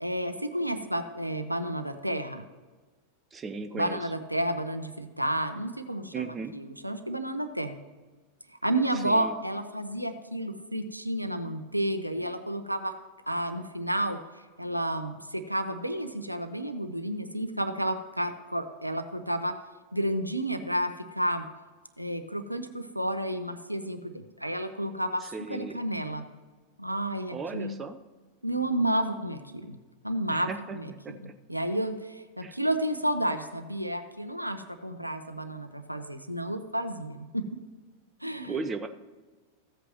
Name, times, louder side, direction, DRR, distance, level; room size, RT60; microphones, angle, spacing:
voice 1, 0.0-2.5 3.7-6.3 6.5-7.8 8.6-12.9 13.3-14.2 14.6-19.5 19.9-21.5 22.0-26.3 26.8-27.7 28.4-29.8 30.0-37.4 38.2-38.6, right 1 dB, 90° right, 9 dB, 0.6 m, -31 dB
voice 2, 3.3-4.1 6.1-6.6 8.9-9.3 25.2-25.8 27.3-28.0 30.3-30.8 31.0-31.3 32.4-32.6 38.4-38.9, right 4 dB, 20° right, 8 dB, 0.6 m, -36 dB
15.0 x 8.2 x 3.0 m, 1.3 s
figure-of-eight pair, 90°, 0 cm